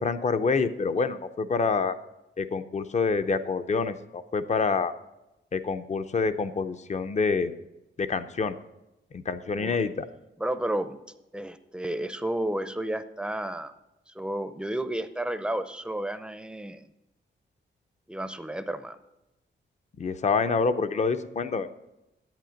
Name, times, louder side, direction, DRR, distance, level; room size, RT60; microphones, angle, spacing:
voice 1, 0.0-1.9 2.4-4.9 5.5-7.5 8.0-8.6 9.1-10.0 20.0-21.7, left 4 dB, 35° left, 11 dB, 0.6 m, -27 dB
voice 2, 9.5-9.9 10.4-11.0 11.3-13.7 14.1-16.8 18.1-19.0, right 1 dB, 5° right, 11 dB, 0.5 m, -32 dB
10.5 x 8.7 x 5.1 m, 0.96 s
wide cardioid pair, 145°, 19 cm